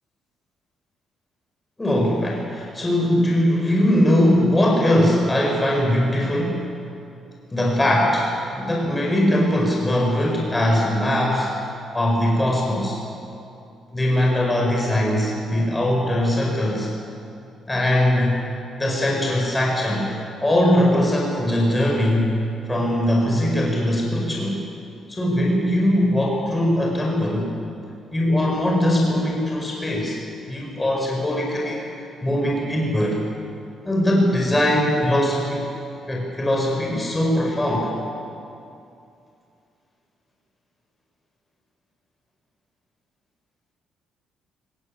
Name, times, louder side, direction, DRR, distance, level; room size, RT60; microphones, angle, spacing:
voice 1, 1.8-6.7 7.5-11.6 11.9-13.0 13.9-16.9 17.7-18.5 18.8-20.1 20.4-22.4 22.7-24.6 25.1-27.5 28.1-30.2 30.5-33.2 33.9-35.6 36.1-37.9, left 1 dB, 15° left, -1 dB, 5.2 m, -21 dB
19.0 x 18.5 x 8.7 m, 2.6 s
cardioid pair, 90°, 0 cm